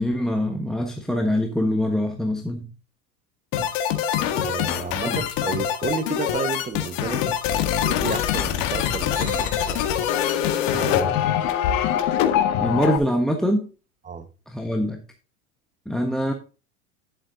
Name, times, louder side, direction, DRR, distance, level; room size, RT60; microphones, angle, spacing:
voice 1, 0.0-2.7 5.0-5.2 12.6-13.7 14.5-15.0 15.9-16.3, equal, ahead, 1.3 m, -24 dB
sound 1, 3.5-13.0, left 10 dB, 50° left, 1.8 m, -24 dB
voice 2, 4.3-7.2 7.8-10.0 10.7-11.2 14.0-14.3, right 6 dB, 15° right, 1.3 m, -31 dB
sound 2, 9.1-10.5, right 7 dB, 75° right, 2.9 m, -42 dB
11.5 x 7.6 x 2.7 m
hypercardioid pair, 95°, 44 cm